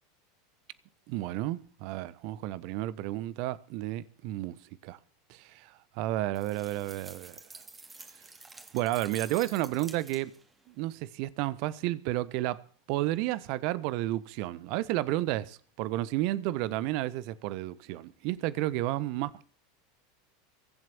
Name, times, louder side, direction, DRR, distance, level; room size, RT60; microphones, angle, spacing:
voice 1, 1.1-4.6 4.8-5.0 5.3-7.4 8.7-10.3 10.8-19.4, right 16 dB, 55° right, 1.1 m, -32 dB
sound 1, 6.3-10.5, right 3 dB, 15° right, 2.6 m, -49 dB
23.0 x 7.8 x 7.0 m
figure-of-eight pair, 80°, 0 cm